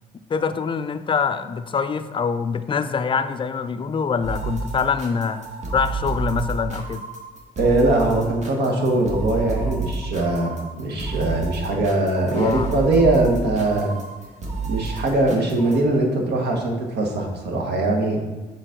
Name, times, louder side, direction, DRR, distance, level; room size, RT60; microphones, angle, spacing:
voice 1, 0.3-5.4 5.7-7.0 11.7-11.8 12.4-12.7, left 5 dB, 25° left, 10 dB, 0.4 m, -24 dB
sound 1, 4.2-15.8, right 3 dB, 35° right, 1.4 m, -30 dB
voice 2, 7.6-14.0 14.7-18.2, right 2 dB, 60° right, 1 dB, 1.2 m, -21 dB
6.2 x 4.0 x 3.8 m, 1.2 s
hypercardioid pair, 50°, 19 cm